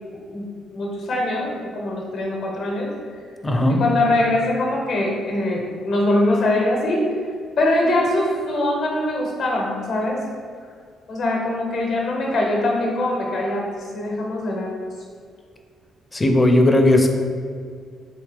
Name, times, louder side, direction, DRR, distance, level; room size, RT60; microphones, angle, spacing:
voice 1, 0.7-2.9 3.7-7.1 7.6-10.2 11.1-14.7, left 1 dB, 65° left, -1 dB, 0.7 m, -22 dB
voice 2, 3.4-3.8 16.1-17.1, left 1 dB, 20° left, 3 dB, 0.4 m, -16 dB
3.3 x 3.2 x 3.3 m, 2.1 s
cardioid pair, 90°, 0 cm